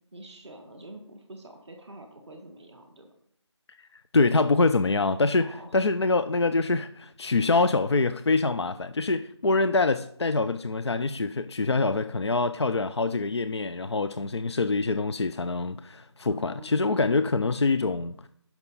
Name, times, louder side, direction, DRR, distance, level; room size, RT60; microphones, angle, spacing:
voice 1, 0.1-3.1 5.4-5.7 16.2-16.8, right 1 dB, ahead, 0.5 m, -46 dB
voice 2, 4.1-18.3, left 3 dB, 65° left, 0.5 m, -25 dB
12.0 x 5.9 x 4.0 m
figure-of-eight pair, 160°, 15 cm